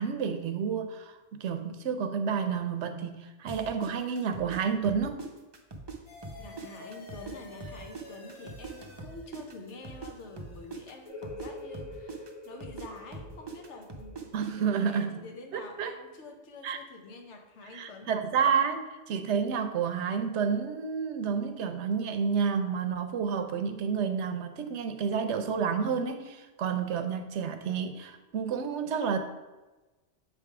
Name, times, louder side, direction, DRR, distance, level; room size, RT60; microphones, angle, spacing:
voice 1, 0.0-5.2 14.3-15.2 15.5-15.9 16.6-16.8 17.7-29.2, right 6 dB, 80° right, 7 dB, 0.9 m, -30 dB
sound 1, 3.5-6.0 6.2-10.1 10.4-14.5, right 3 dB, 30° right, 0.5 m, -42 dB
sound 2, 6.1-11.1, left 2 dB, 55° left, 1.6 m, -50 dB
voice 2, 6.4-18.1, left 3 dB, 80° left, 4 dB, 1.2 m, -47 dB
sound 3, 11.0-16.4, left 2 dB, 30° left, 1.2 m, -46 dB
7.5 x 3.6 x 4.7 m, 1.2 s
omnidirectional pair, 1.2 m